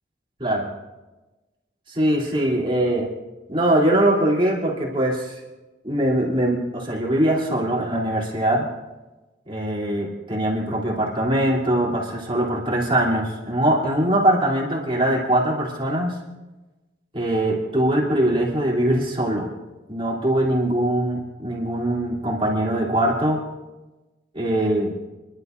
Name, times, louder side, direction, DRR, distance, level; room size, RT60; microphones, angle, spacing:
voice 1, 1.9-3.1 3.5-5.4 5.8-8.7 9.5-16.1 17.1-19.5 19.9-23.4 24.3-24.9, right 1 dB, 30° right, -3 dB, 3.4 m, -22 dB
28.5 x 12.0 x 2.7 m, 1.1 s
head